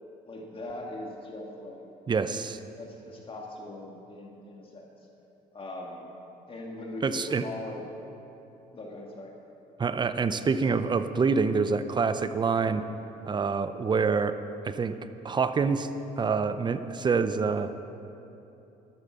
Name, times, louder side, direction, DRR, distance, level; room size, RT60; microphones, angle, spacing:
voice 1, 0.3-1.8 2.3-2.5 2.7-4.9 5.5-6.1 6.5-7.8 8.7-9.3, left 2 dB, 30° left, -1 dB, 2.0 m, -40 dB
voice 2, 2.1-2.6 7.0-7.5 9.8-12.8 13.2-14.3 14.6-14.9 15.2-15.9 16.2-17.7, right 5 dB, 25° right, 11 dB, 0.7 m, -26 dB
13.0 x 12.0 x 6.3 m, 3.0 s
cardioid pair, 110°, 17 cm